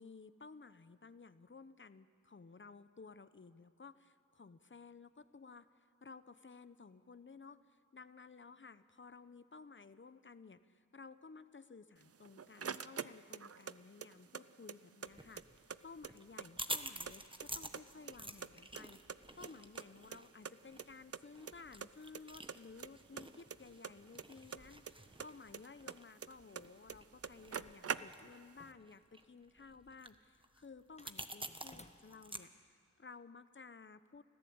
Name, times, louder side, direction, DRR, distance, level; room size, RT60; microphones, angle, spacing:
voice 1, 0.0-34.2, left 4 dB, 40° left, 13 dB, 0.9 m, -56 dB
sound 1, 12.0-13.7 14.0-15.1 15.4-15.5 15.7-17.1 17.4-18.1 18.4-19.9 20.1-20.2 20.5-20.6 20.8-20.9 21.1-21.5 21.8-22.2 22.5-24.9 25.2-26.6 26.9-27.0 27.2-28.5, right 6 dB, 50° right, 0.6 m, -44 dB
sound 2, 15.1-32.4, right 1 dB, 15° right, 1.3 m, -50 dB
sound 3, 28.0-29.4 31.0-32.4, left 2 dB, 20° left, 1.2 m, -61 dB
25.5 x 14.5 x 8.7 m, 2.3 s
cardioid pair, 45°, 30 cm